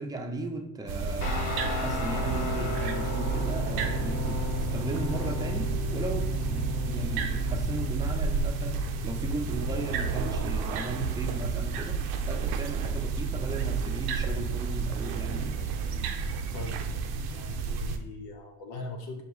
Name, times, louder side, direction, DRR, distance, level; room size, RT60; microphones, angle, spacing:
voice 1, 0.0-15.6, right 2 dB, 10° right, 3 dB, 0.6 m, -36 dB
sound 1, 0.9-18.0, right 5 dB, 70° right, 0.6 m, -31 dB
Guitar, 1.2-10.1, left 5 dB, 85° left, 1.0 m, -35 dB
voice 2, 16.5-19.2, left 2 dB, 65° left, 3 dB, 0.8 m, -41 dB
4.5 x 2.3 x 3.9 m, 0.77 s
hypercardioid pair, 65°, 40 cm